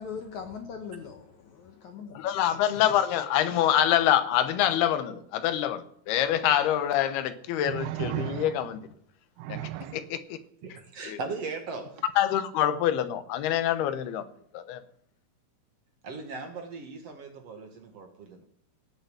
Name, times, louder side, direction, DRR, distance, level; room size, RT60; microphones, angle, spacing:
voice 1, 0.0-2.3, left 6 dB, 65° left, 2.0 m, -40 dB
voice 2, 2.1-8.8 9.5-9.6 9.9-10.4 11.0-11.2 12.2-14.2 14.5-14.8, left 11 dB, 85° left, 3.0 m, -26 dB
sound 1, 6.3-6.4 7.6-8.8 9.4-10.1 12.0-12.1, right 12 dB, 80° right, 2.0 m, -35 dB
voice 3, 10.6-12.0 16.0-18.4, right 4 dB, 55° right, 2.0 m, -38 dB
17.5 x 7.0 x 8.0 m
omnidirectional pair, 4.4 m